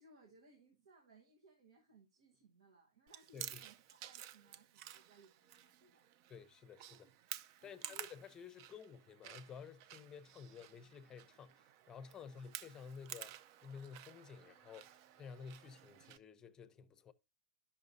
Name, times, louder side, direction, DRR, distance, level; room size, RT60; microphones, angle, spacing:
voice 1, 0.0-6.1 7.6-8.0 12.2-12.5, right 3 dB, 80° right, 1.3 m, -66 dB
Chewing mastication, 3.1-16.2, right 12 dB, 50° right, 0.4 m, -53 dB
voice 2, 3.3-3.6 6.3-7.1 7.6-17.1, left 6 dB, 25° left, 0.7 m, -53 dB
12.0 x 5.7 x 2.6 m
hypercardioid pair, 110°, 3 cm